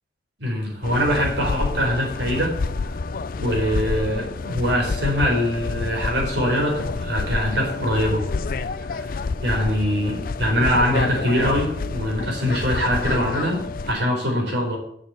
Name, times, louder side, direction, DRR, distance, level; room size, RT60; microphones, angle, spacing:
voice 1, 0.4-2.6 3.4-8.3 8.8-9.1 9.4-14.8, equal, 80° right, -1 dB, 4.2 m, -23 dB
sound 1, 0.8-13.9, left 4 dB, 55° left, 0.5 m, -28 dB
7.4 x 6.5 x 7.5 m, 0.68 s
head